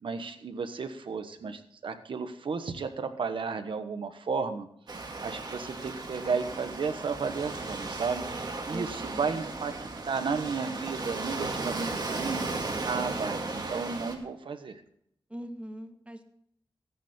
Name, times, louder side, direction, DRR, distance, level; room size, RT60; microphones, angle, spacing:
voice 1, 0.0-8.2 8.6-12.5 12.8-14.8, right 5 dB, 80° right, 8 dB, 1.3 m, -33 dB
Waves surf, 4.9-14.1, right 3 dB, 55° right, 2.3 m, -35 dB
voice 2, 8.7-9.4 15.3-16.2, equal, 15° right, 7 dB, 1.5 m, -41 dB
15.0 x 10.0 x 4.4 m, 0.71 s
wide cardioid pair, 90°, 8 cm